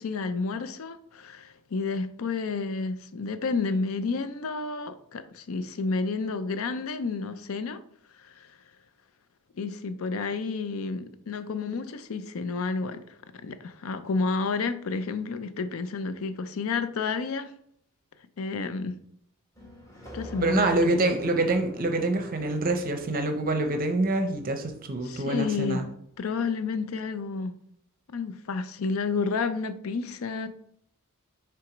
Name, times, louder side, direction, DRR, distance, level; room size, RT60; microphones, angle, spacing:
voice 1, 0.0-7.8 8.2-8.5 9.6-13.0 13.4-17.5 18.4-19.0 20.1-21.1 25.0-25.8 26.2-27.6 28.1-30.5, left 4 dB, 70° left, 0.5 m, -30 dB
sound 1, 19.6-25.9, equal, 15° left, 1.4 m, -46 dB
voice 2, 20.4-25.9, right 2 dB, 40° right, 0.6 m, -26 dB
5.9 x 3.5 x 4.9 m
head